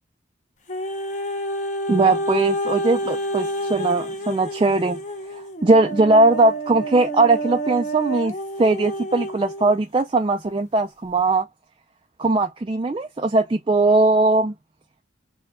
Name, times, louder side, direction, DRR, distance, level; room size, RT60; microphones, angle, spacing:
sound 1, 0.7-9.8 10.4-10.5, equal, 40° left, 0.9 m, -29 dB
voice 1, 1.9-5.0 5.3-11.5 12.2-14.5, right 2 dB, 25° right, 0.3 m, -19 dB
4.5 x 2.2 x 3.5 m
head